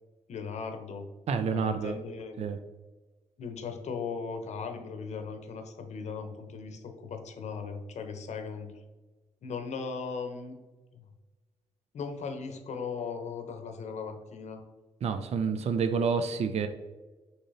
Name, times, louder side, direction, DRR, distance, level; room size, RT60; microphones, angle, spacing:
voice 1, 0.3-1.1 1.5-2.5 3.4-8.7 9.4-10.6 10.9-11.1 11.9-14.6, left 5 dB, 65° left, 6 dB, 0.7 m, -38 dB
voice 2, 1.3-2.0 2.4-2.6 15.0-16.7, right 5 dB, 60° right, 8 dB, 0.4 m, -28 dB
6.4 x 2.9 x 2.7 m, 1.2 s
supercardioid pair, 55°, 13 cm